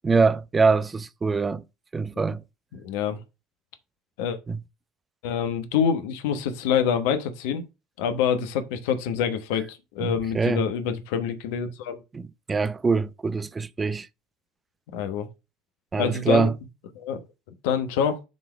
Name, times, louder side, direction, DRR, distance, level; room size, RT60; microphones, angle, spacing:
voice 1, 0.0-1.6 1.9-2.4 4.5-4.6 10.0-10.6 12.1-12.2 12.5-14.1 15.9-16.5, right 4 dB, 25° right, 0.6 m, -23 dB
voice 2, 2.7-3.2 4.2-4.4 5.2-7.6 8.0-12.0 14.9-15.3 16.0-16.5 16.9-17.2 17.6-18.2, left 7 dB, 70° left, 1.0 m, -26 dB
7.5 x 3.8 x 5.1 m
hypercardioid pair, 65°, 0 cm